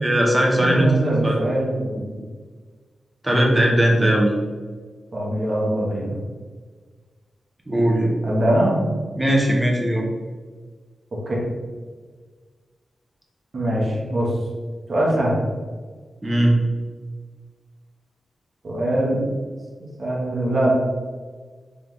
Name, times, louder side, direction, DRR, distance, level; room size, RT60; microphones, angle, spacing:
voice 1, 0.0-0.9 1.2-1.3 3.2-4.3 7.7-8.1 9.2-10.0 16.2-16.5, right 1 dB, 20° right, -1 dB, 0.8 m, -18 dB
voice 2, 0.6-2.2 5.1-6.2 8.2-8.9 11.3-11.4 13.5-14.3 14.9-15.4 18.6-19.3 20.0-20.7, right 1 dB, 45° right, -4 dB, 1.1 m, -22 dB
3.8 x 3.3 x 3.1 m, 1.5 s
wide cardioid pair, 110°, 0 cm